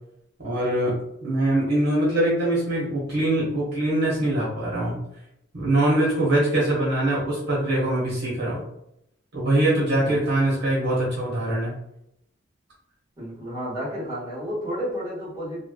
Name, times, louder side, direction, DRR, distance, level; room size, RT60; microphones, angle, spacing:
voice 1, 0.4-1.0 1.2-5.0 5.5-8.6 9.3-11.7, right 1 dB, 55° right, -6 dB, 1.0 m, -23 dB
voice 2, 13.2-15.6, equal, 20° right, -8 dB, 1.5 m, -31 dB
3.2 x 2.2 x 2.2 m, 0.79 s
head